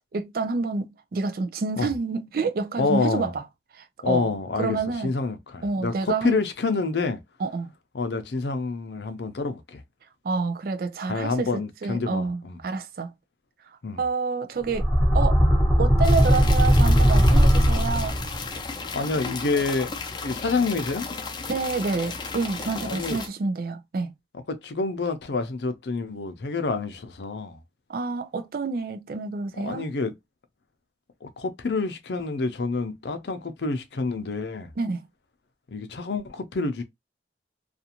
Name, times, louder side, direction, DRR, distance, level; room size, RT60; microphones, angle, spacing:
voice 1, 0.0-3.4 3.7-5.1 5.6-6.5 7.4-7.7 10.2-13.1 14.0-15.4 15.8-18.2 21.5-24.1 27.9-29.8 34.8-35.0, right 4 dB, 55° right, 0.4 m, -28 dB
voice 2, 2.8-3.3 4.0-4.8 5.0-7.2 7.9-9.8 11.1-12.6 13.8-14.0 18.9-19.9 20.2-21.1 22.8-23.2 24.5-27.6 29.6-30.1 31.2-34.7 35.7-36.8, left 3 dB, 75° left, 0.6 m, -27 dB
Monster Growl, 14.7-18.5, equal, ahead, 0.8 m, -18 dB
sound 1, 16.0-23.3, left 4 dB, 25° left, 0.4 m, -34 dB
2.5 x 2.4 x 2.8 m
head